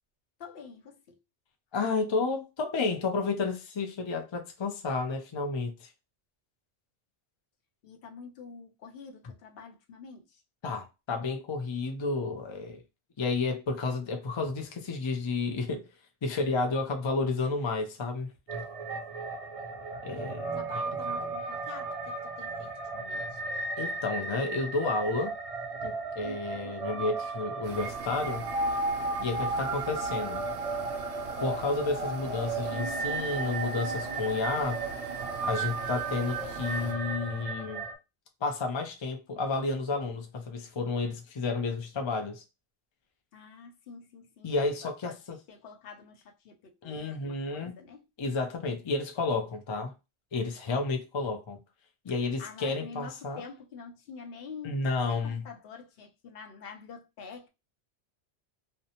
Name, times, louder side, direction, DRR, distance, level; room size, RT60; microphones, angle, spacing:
voice 1, 0.4-1.2 7.8-10.4 18.6-18.7 20.4-23.4 43.3-45.2 45.5-48.1 52.4-57.5, left 5 dB, 60° left, 0.7 m, -47 dB
voice 2, 1.7-5.9 10.6-12.8 13.2-15.9 16.2-18.3 20.0-20.5 21.2-21.3 23.8-25.3 25.8-28.5 29.2-30.4 31.4-34.8 35.4-37.9 38.4-42.4 44.4-45.4 46.8-47.8 48.2-49.9 50.3-51.6 52.0-53.4 54.6-55.4, left 3 dB, 45° left, 0.3 m, -31 dB
sound 1, 18.5-37.9, right 3 dB, 50° right, 0.4 m, -34 dB
sound 2, 27.6-36.9, right 5 dB, 70° right, 0.8 m, -43 dB
2.6 x 2.1 x 2.7 m
omnidirectional pair, 1.2 m